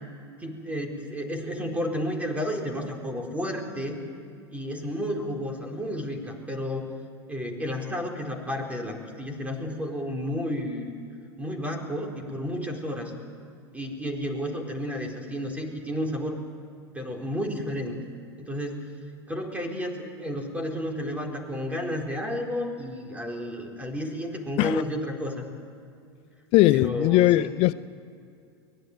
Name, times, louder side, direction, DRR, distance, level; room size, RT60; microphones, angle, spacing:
voice 1, 0.4-4.0 4.5-6.9 7.3-10.9 11.4-13.1 13.7-16.4 16.9-18.0 18.4-18.9 19.3-25.5 26.7-27.6, equal, 10° right, 4.3 m, -32 dB
voice 2, 26.5-27.7, left 17 dB, 45° left, 0.5 m, -20 dB
24.0 x 18.5 x 9.2 m
hypercardioid pair, 95°, 14 cm